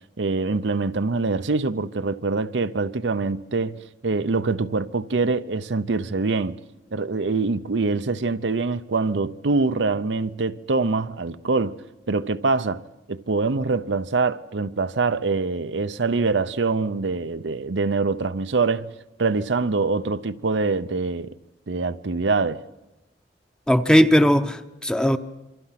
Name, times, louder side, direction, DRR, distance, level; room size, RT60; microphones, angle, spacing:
voice 1, 0.2-6.6 6.9-11.8 12.1-12.8 13.1-18.9 19.2-21.3 21.7-22.6, right 3 dB, 90° right, 0.7 m, -24 dB
voice 2, 23.7-25.2, equal, 5° left, 0.8 m, -18 dB
27.5 x 24.5 x 5.9 m
head